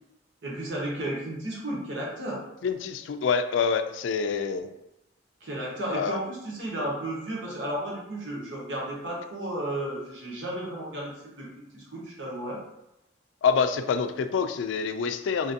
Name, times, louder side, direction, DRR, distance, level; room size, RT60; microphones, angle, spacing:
voice 1, 0.4-2.4 5.4-11.5 11.7-12.6, right 1 dB, 80° right, -4 dB, 1.1 m, -33 dB
voice 2, 2.6-4.7 5.9-6.2 13.4-15.5, left 6 dB, 85° left, 9 dB, 0.3 m, -26 dB
5.0 x 2.5 x 2.6 m, 0.89 s
head